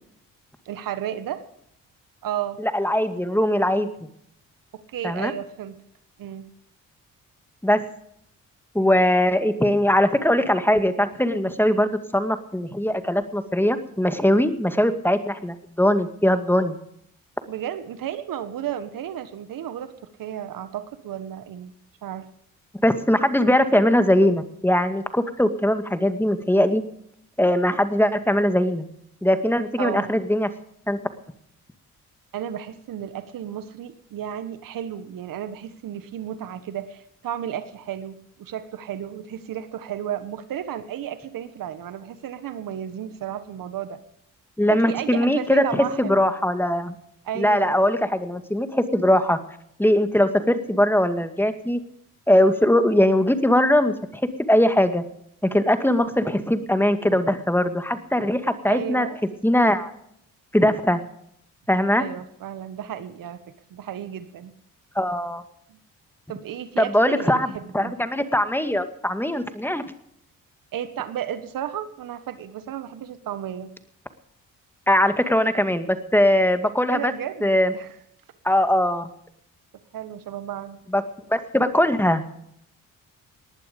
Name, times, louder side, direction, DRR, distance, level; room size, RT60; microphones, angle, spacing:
voice 1, 0.6-1.4 2.2-2.6 4.7-5.8 6.2-6.5 17.5-21.7 22.0-22.3 29.8-30.2 32.3-44.0 44.7-46.3 47.2-47.8 58.7-59.2 62.0-63.4 63.7-64.5 65.7-65.8 66.3-67.9 70.7-73.7 76.9-77.5 77.7-77.9 79.9-80.8, right 10 dB, 75° right, 12 dB, 1.5 m, -33 dB
voice 2, 2.6-3.9 5.0-5.3 7.6-7.8 8.7-16.8 22.8-26.8 27.4-28.9 29.2-30.5 30.9-31.0 44.6-47.0 47.4-49.4 49.8-51.8 52.3-54.2 54.5-55.0 55.4-59.1 59.4-59.9 60.5-61.0 61.7-62.0 65.0-65.4 66.8-69.8 74.9-77.1 77.4-77.7 78.4-79.1 80.9-81.0 81.3-82.2, left 1 dB, 5° left, 9 dB, 2.1 m, -21 dB
19.0 x 11.5 x 5.3 m, 0.70 s
supercardioid pair, 60°, 34 cm